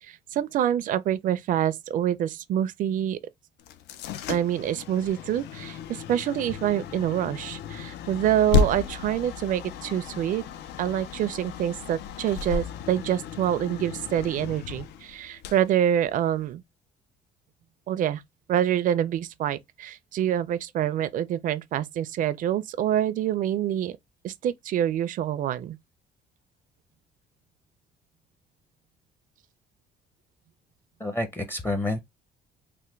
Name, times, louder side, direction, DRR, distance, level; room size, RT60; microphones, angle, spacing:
voice 1, 0.0-3.2 4.3-10.4 10.8-16.6 17.9-18.2 18.5-24.0 24.2-25.8, right 10 dB, 50° right, 0.4 m, -26 dB
sound 1, 3.6-16.5, left 6 dB, 75° left, 0.4 m, -33 dB
voice 2, 31.0-32.0, left 2 dB, 15° left, 0.6 m, -28 dB
3.3 x 2.1 x 3.0 m
cardioid pair, 110°, 17 cm